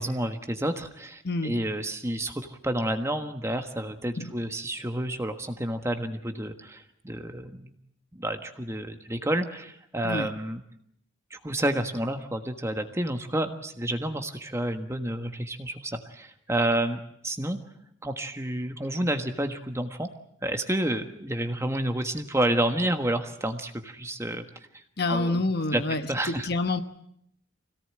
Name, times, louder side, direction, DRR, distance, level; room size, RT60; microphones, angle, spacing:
voice 1, 0.0-7.7 8.1-10.6 11.3-17.6 18.0-20.1 20.4-24.4 24.7-24.8 25.1-25.4 25.7-25.8 26.1-26.5, right 1 dB, 15° right, 6 dB, 1.4 m, -30 dB
voice 2, 1.2-1.6 4.2-4.4 10.0-10.3 25.0-26.8, left 2 dB, 55° left, 9 dB, 1.2 m, -28 dB
25.5 x 18.0 x 8.8 m, 0.73 s
head